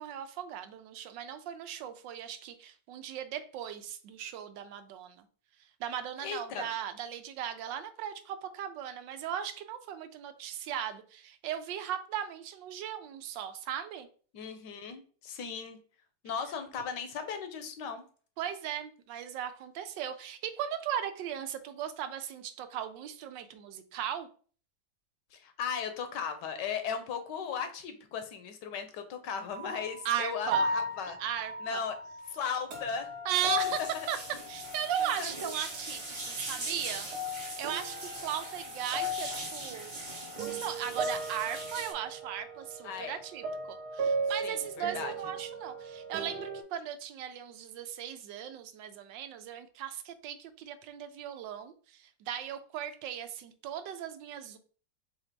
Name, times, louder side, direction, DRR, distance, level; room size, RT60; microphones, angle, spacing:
voice 1, 0.0-5.3 5.8-14.1 18.4-24.3 30.0-30.6 31.2-31.8 33.2-34.2 34.5-37.1 37.3-40.0 40.4-54.6, right 9 dB, 90° right, 9 dB, 1.3 m, -37 dB
voice 2, 6.2-6.7 14.3-15.8 16.2-18.0 25.3-31.2 31.6-32.0 32.3-33.1 33.8-34.1 35.0-35.3 42.8-43.2 44.4-45.1, left 6 dB, 75° left, 8 dB, 1.3 m, -37 dB
sound 1, 29.5-29.9 30.5-35.3 35.7-36.5 36.9-46.6, equal, 65° right, 1.3 m, -37 dB
sound 2, 33.4-41.9, right 2 dB, 20° right, 0.8 m, -41 dB
4.1 x 2.7 x 4.4 m, 0.42 s
omnidirectional pair, 1.9 m